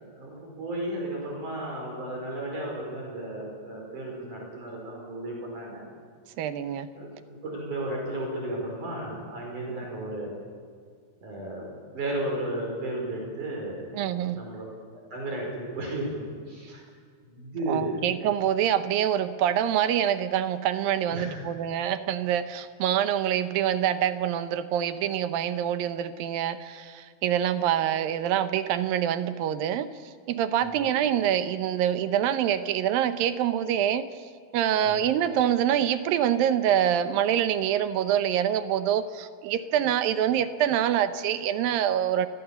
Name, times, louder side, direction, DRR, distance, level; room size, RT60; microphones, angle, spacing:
voice 1, 0.0-5.8 6.9-7.1 7.4-10.3 11.2-13.8 14.3-14.7 15.1-16.8 17.2-18.1 21.1-21.4 30.7-30.8 34.8-34.9, right 1 dB, 55° right, -1 dB, 6.3 m, -34 dB
voice 2, 6.4-6.9 13.9-14.4 17.7-34.1 34.5-42.3, right 10 dB, 75° right, 11 dB, 2.6 m, -25 dB
28.5 x 21.5 x 7.1 m, 2.1 s
omnidirectional pair, 4.2 m